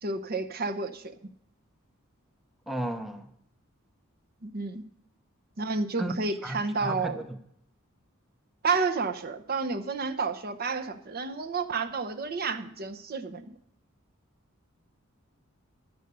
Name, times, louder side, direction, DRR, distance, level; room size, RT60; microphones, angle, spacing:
voice 1, 0.0-1.1 4.4-4.8 5.6-7.2 8.6-13.5, right 4 dB, 45° right, 0.8 m, -30 dB
voice 2, 2.7-3.3 6.0-6.1 6.4-7.4, right 1 dB, ahead, 0.7 m, -34 dB
11.5 x 8.1 x 6.7 m
head